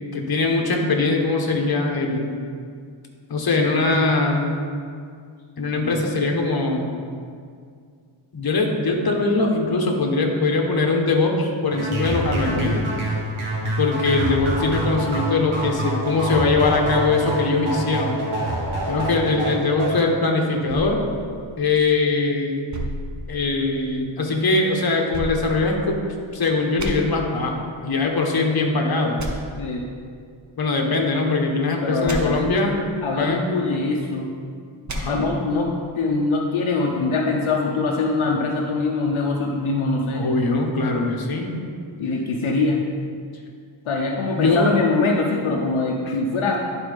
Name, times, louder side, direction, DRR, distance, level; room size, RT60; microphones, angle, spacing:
voice 1, 0.1-2.3 3.3-4.5 5.6-6.9 8.3-12.8 13.8-18.2 18.9-21.0 21.6-22.6 23.3-26.0 26.3-29.2 30.6-32.7 33.2-33.4 34.9-35.2 40.1-41.5 44.4-44.7 46.0-46.1, left 3 dB, 50° left, 1 dB, 1.2 m, -21 dB
sound 1, 11.7-20.0, right 1 dB, 75° right, 1.5 m, -26 dB
sound 2, 20.7-22.1 22.7-23.9 25.1-26.3 26.8-26.9 29.2-29.3 32.0-32.2 34.9-35.0, right 1 dB, 35° right, 1.0 m, -33 dB
voice 2, 31.8-32.5 33.0-34.3 35.1-40.3 42.0-42.8 43.9-46.6, left 3 dB, 80° left, 0 dB, 0.9 m, -23 dB
11.0 x 4.5 x 3.5 m, 2.2 s
cardioid pair, 75°, 48 cm